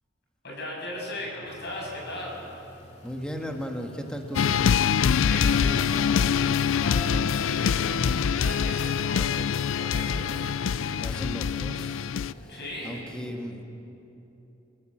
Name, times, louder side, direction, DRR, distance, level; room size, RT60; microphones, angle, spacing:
voice 1, 0.4-2.4 5.1-9.4 9.7-10.5 12.5-13.2, left 1 dB, 60° left, -3 dB, 7.0 m, -37 dB
sound 1, 0.8-12.3, left 1 dB, 25° right, 6.6 m, -52 dB
sound 2, 1.4-13.0, left 1 dB, 35° left, 2.4 m, -53 dB
voice 2, 3.0-4.9 11.0-12.1 12.3-13.6, equal, 5° left, 2 dB, 1.7 m, -36 dB
sound 3, 4.3-12.3, left 7 dB, 85° left, 0.4 m, -24 dB
28.0 x 16.0 x 7.5 m, 3.0 s
head